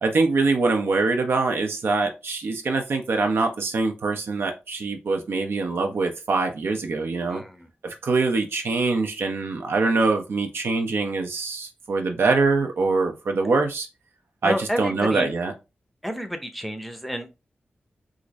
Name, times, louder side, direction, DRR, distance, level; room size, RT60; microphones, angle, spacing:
voice 1, 0.0-7.4 7.8-13.9 14.4-15.5, right 3 dB, 80° right, 4 dB, 0.7 m, -24 dB
voice 2, 7.3-7.7 14.4-15.3 16.0-17.4, equal, ahead, 6 dB, 0.6 m, -30 dB
3.8 x 2.5 x 3.0 m, 0.27 s
wide cardioid pair, 85°, 4 cm